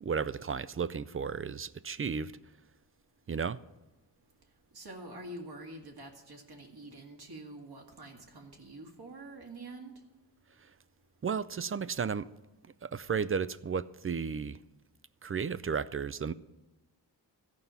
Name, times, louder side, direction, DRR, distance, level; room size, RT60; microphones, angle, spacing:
voice 1, 0.0-2.3 3.3-3.6 11.2-12.3 12.8-14.6 15.2-16.3, right 6 dB, 35° right, 0.4 m, -33 dB
voice 2, 4.7-10.0, right 2 dB, 65° right, 2.2 m, -46 dB
14.0 x 5.6 x 9.1 m
wide cardioid pair, 95°, 42 cm